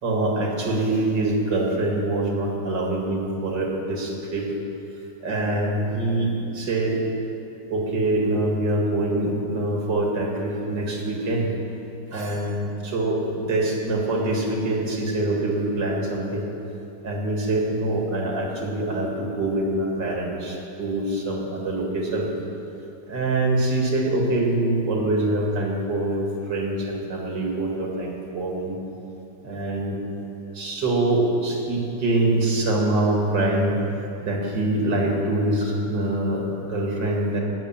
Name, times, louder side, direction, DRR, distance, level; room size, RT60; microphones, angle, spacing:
voice 1, 0.0-4.5 5.2-7.0 7.7-11.5 12.1-16.4 17.0-22.3 23.1-28.8 29.4-30.0 30.5-33.8 34.2-36.4 36.7-37.4, right 2 dB, 85° right, -1 dB, 2.8 m, -24 dB
19.0 x 6.7 x 7.3 m, 3.0 s
omnidirectional pair, 1.9 m